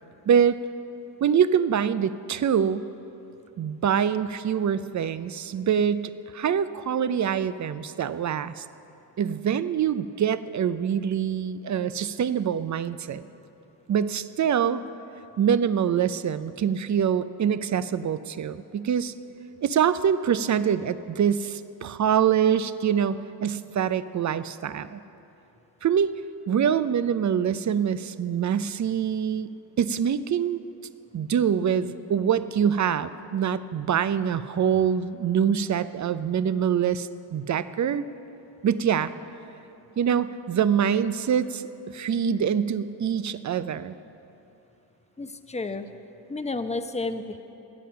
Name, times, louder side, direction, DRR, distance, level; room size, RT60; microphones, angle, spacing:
voice 1, 0.3-0.6 1.2-2.9 3.6-8.6 9.2-13.2 13.9-14.8 15.4-19.1 19.6-25.0 25.8-26.1 26.5-29.5 29.8-30.6 31.1-38.0 38.6-39.1 40.0-44.0, right 8 dB, 35° right, 14 dB, 0.6 m, -25 dB
voice 2, 45.2-45.9 46.3-47.4, left 3 dB, 15° left, 9 dB, 0.9 m, -31 dB
20.0 x 8.4 x 5.7 m, 2.9 s
supercardioid pair, 50°, 48 cm